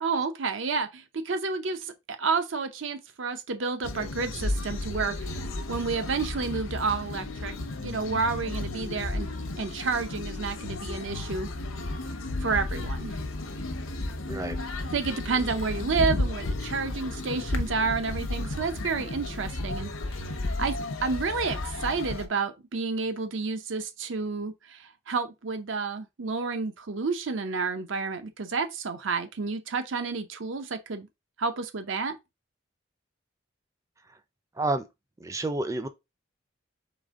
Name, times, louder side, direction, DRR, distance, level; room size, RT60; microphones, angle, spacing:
voice 1, 0.0-1.9 2.2-5.4 5.7-7.5 7.8-9.3 9.6-11.5 12.4-13.2 14.9-19.9 20.6-31.1 31.4-32.2, right 4 dB, 70° right, 0.7 m, -30 dB
sound 1, 3.8-22.3, left 2 dB, 85° left, 0.8 m, -33 dB
voice 2, 35.2-35.9, right 2 dB, 15° right, 0.4 m, -29 dB
4.0 x 3.5 x 3.6 m
head